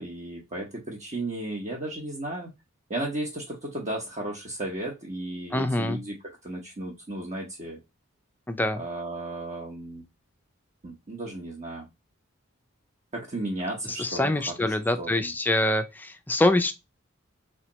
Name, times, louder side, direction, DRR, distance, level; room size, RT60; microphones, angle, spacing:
voice 1, 0.0-2.5 2.9-6.2 6.4-7.8 8.8-10.0 10.8-11.9 13.1-14.3 15.0-15.3, right 1 dB, 35° right, 0.8 m, -34 dB
voice 2, 5.5-6.0 8.5-8.8 13.8-16.7, left 1 dB, 10° left, 0.4 m, -25 dB
3.5 x 3.1 x 2.9 m
head